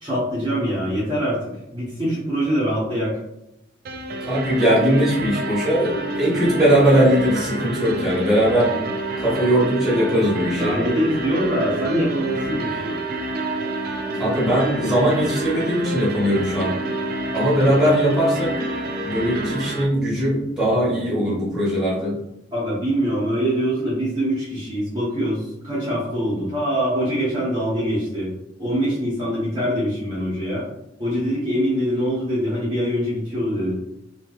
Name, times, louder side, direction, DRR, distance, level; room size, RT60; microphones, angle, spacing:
voice 1, 0.0-3.1 10.6-13.0 22.5-28.3 28.6-30.7 31.0-33.7, equal, 25° right, -9 dB, 0.8 m, -24 dB
sound 1, 3.8-19.8, right 2 dB, 50° right, 0.3 m, -28 dB
voice 2, 4.2-10.7 14.1-16.8 17.3-18.6 19.0-22.2, equal, ahead, -8 dB, 1.1 m, -20 dB
3.1 x 2.7 x 2.3 m, 0.84 s
head